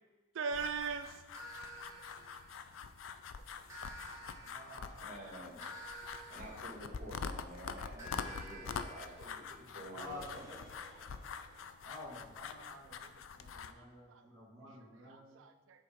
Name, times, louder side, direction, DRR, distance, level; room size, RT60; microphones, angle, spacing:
voice 1, 0.3-1.2 2.0-2.4 4.9-5.1 10.8-11.0 11.5-11.6 12.5-13.1 13.4-13.5 13.8-14.3 15.0-15.8, right 5 dB, 70° right, 8 dB, 0.4 m, -42 dB
sound 1, 0.5-13.7, left 6 dB, 85° left, 0.4 m, -45 dB
sound 2, 1.3-3.0 3.7-7.4 8.0-11.7, equal, 15° right, 1.4 m, -52 dB
voice 2, 4.4-5.1 9.4-10.2 11.8-15.4, left 1 dB, 20° left, -5 dB, 1.9 m, -51 dB
voice 3, 5.0-5.7 6.3-10.6, right 1 dB, 40° right, -2 dB, 1.8 m, -50 dB
7.9 x 3.8 x 5.0 m, 1.3 s
head